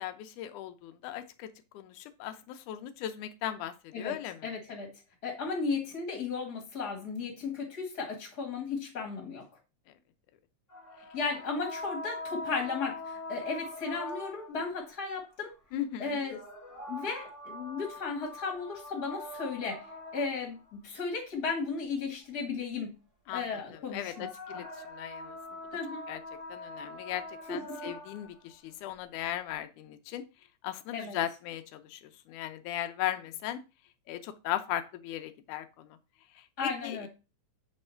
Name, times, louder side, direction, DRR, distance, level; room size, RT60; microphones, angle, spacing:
voice 1, 0.0-1.5 1.7-4.5 15.7-16.2 23.3-25.4 26.1-26.2 26.5-30.2 30.6-32.0 32.3-33.6 34.1-36.0 36.4-37.1, left 12 dB, 85° left, 9 dB, 2.2 m, -37 dB
voice 2, 4.4-4.9 5.2-9.4 11.1-15.5 16.0-16.4 16.9-19.9 20.1-22.9 23.3-24.3 24.5-24.6 25.7-26.0 27.5-27.9 30.9-31.2 36.6-37.1, left 4 dB, 40° left, -1 dB, 1.7 m, -35 dB
sound 1, 10.7-14.7 16.2-20.7 23.9-28.3, left 2 dB, 10° right, 2.1 m, -43 dB
7.7 x 3.5 x 4.3 m, 0.29 s
omnidirectional pair, 3.5 m